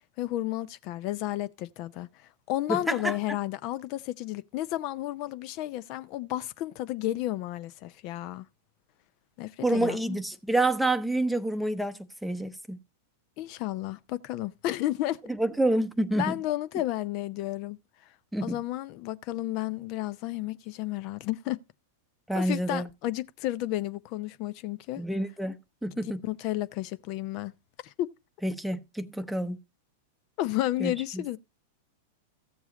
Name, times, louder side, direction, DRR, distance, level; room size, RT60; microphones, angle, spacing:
voice 1, 0.2-2.1 2.5-8.4 9.4-10.2 13.4-15.2 16.1-17.8 18.4-21.6 22.3-25.0 26.2-27.5 27.8-28.1 30.4-31.4, left 15 dB, 45° left, 0.6 m, -32 dB
voice 2, 2.7-3.2 9.6-12.8 15.3-16.4 18.3-18.6 22.3-22.9 25.0-26.2 28.4-29.6 30.8-31.2, right 1 dB, ahead, 0.8 m, -28 dB
14.0 x 7.2 x 4.0 m
figure-of-eight pair, 95°, 0 cm